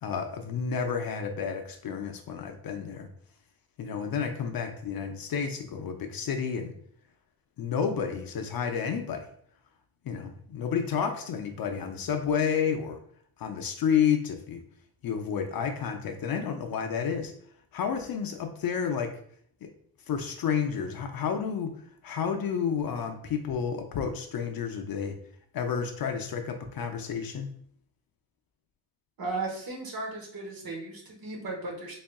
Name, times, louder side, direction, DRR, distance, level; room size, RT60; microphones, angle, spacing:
voice 1, 0.0-3.1 3.8-6.7 7.6-9.2 10.0-13.0 13.4-14.6 15.0-17.3 17.7-19.1 19.6-19.7 20.1-21.7 22.0-25.2 25.5-27.5, left 7 dB, 50° left, 5 dB, 0.5 m, -30 dB
voice 2, 29.2-32.0, right 3 dB, 45° right, -1 dB, 1.2 m, -35 dB
4.1 x 3.5 x 2.3 m, 0.62 s
cardioid pair, 120°, 47 cm